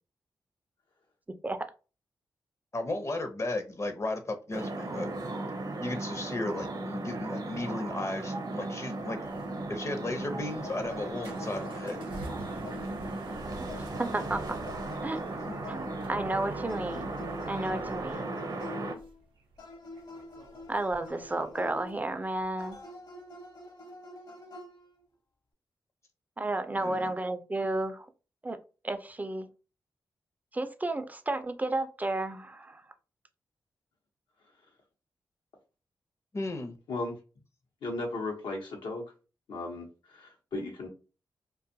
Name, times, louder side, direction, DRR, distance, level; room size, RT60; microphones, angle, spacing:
voice 1, 2.7-5.1 5.8-9.2 9.7-12.0 26.8-27.1 36.3-36.8, left 2 dB, 35° left, 5 dB, 0.6 m, -35 dB
sound 1, 4.5-19.0, right 2 dB, 55° right, 0.8 m, -36 dB
sound 2, 9.0-22.8, right 1 dB, 85° right, 0.4 m, -50 dB
sound 3, 10.6-13.2 13.7-16.1 16.7-19.2 19.6-22.0 22.6-25.0, left 2 dB, 55° left, 1.0 m, -47 dB
voice 2, 13.6-14.6 15.0-15.2 15.7-17.1 17.5-18.4 20.7-22.8 26.4-28.1 28.4-28.6 28.8-29.5 30.5-32.8, right 2 dB, 20° right, 9 dB, 0.4 m, -32 dB
voice 3, 36.9-37.2 37.8-39.1 39.5-40.9, left 2 dB, 80° left, 1 dB, 0.8 m, -36 dB
2.5 x 2.3 x 2.6 m, 0.33 s
supercardioid pair, 40°, 8 cm